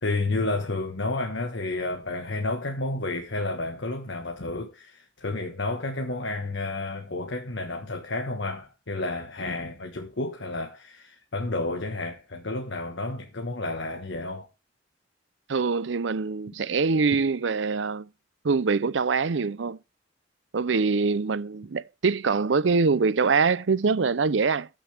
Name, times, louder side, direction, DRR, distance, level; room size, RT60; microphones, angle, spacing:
voice 1, 0.0-14.5, left 2 dB, 70° left, 1.4 m, -31 dB
voice 2, 15.5-18.1 18.4-19.8 20.5-24.7, right 4 dB, 70° right, 0.6 m, -24 dB
14.5 x 6.3 x 3.4 m
head